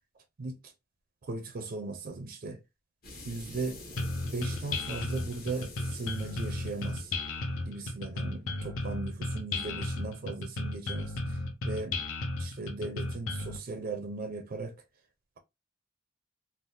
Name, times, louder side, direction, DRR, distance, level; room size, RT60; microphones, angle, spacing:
voice 1, 0.4-0.7 1.2-2.6 3.2-3.9 4.2-7.1 7.6-12.0 12.4-14.7, right 3 dB, 50° right, 0.4 m, -38 dB
sound 1, 3.0-9.5, left 2 dB, 50° left, 1.0 m, -48 dB
sound 2, 4.0-13.6, left 2 dB, 75° left, 0.6 m, -34 dB
3.3 x 2.0 x 2.6 m
head